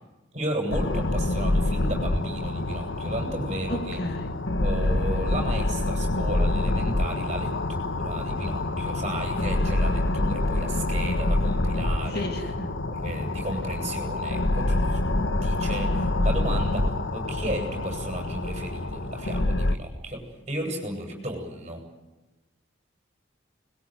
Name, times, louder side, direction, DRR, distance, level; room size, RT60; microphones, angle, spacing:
voice 1, 0.3-4.0 4.6-12.2 12.9-21.8, right 1 dB, 35° right, 1 dB, 7.7 m, -34 dB
sound 1, 0.7-19.8, left 2 dB, 70° left, 1.3 m, -26 dB
voice 2, 3.7-4.3 12.1-12.7, left 1 dB, 50° left, 6 dB, 2.4 m, -32 dB
25.5 x 22.5 x 9.4 m, 1.1 s
head